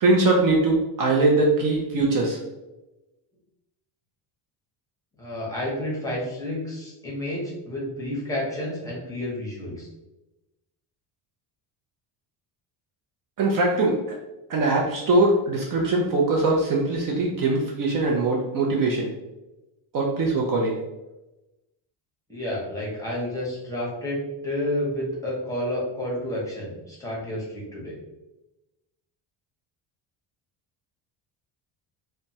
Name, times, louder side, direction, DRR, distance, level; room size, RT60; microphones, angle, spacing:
voice 1, 0.0-2.4 13.4-14.0 14.5-19.1 19.9-20.7, right 2 dB, 45° right, -1 dB, 0.5 m, -21 dB
voice 2, 5.2-9.9 22.3-28.0, left 1 dB, 5° left, -5 dB, 0.7 m, -30 dB
2.9 x 2.2 x 2.7 m, 1.0 s
cardioid pair, 160°, 47 cm